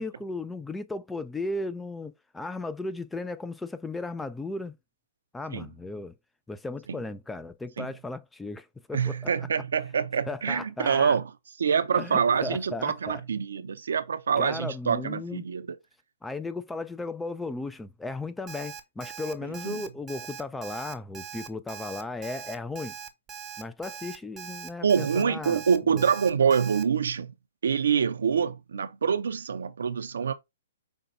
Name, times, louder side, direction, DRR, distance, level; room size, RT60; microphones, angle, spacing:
voice 1, 0.0-4.7 5.3-6.1 6.5-9.3 10.3-11.2 11.9-13.2 14.4-15.4 16.2-22.9 23.6-26.1, left 2 dB, 5° left, 0.3 m, -36 dB
voice 2, 8.9-11.3 11.6-15.7 19.4-19.8 24.8-27.3 27.6-30.3, right 6 dB, 75° right, 0.6 m, -26 dB
Alarm, 18.5-26.8, right 8 dB, 20° right, 0.7 m, -41 dB
5.3 x 2.3 x 3.8 m
hypercardioid pair, 135°, 0 cm